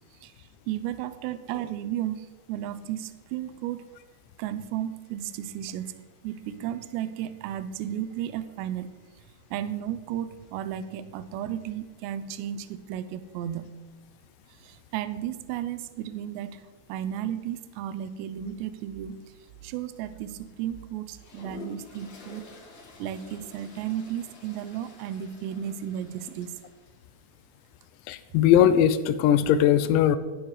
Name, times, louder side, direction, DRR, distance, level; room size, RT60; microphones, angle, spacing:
voice 1, 0.1-3.9 4.4-9.3 9.5-13.7 14.5-22.5 23.0-26.6, right 10 dB, 80° right, 12 dB, 2.6 m, -34 dB
Toilet flush, 21.1-26.9, left 2 dB, 45° left, 2.6 m, -48 dB
voice 2, 28.1-30.2, left 10 dB, 85° left, 13 dB, 2.9 m, -20 dB
15.0 x 12.5 x 3.2 m, 1.3 s
omnidirectional pair, 5.4 m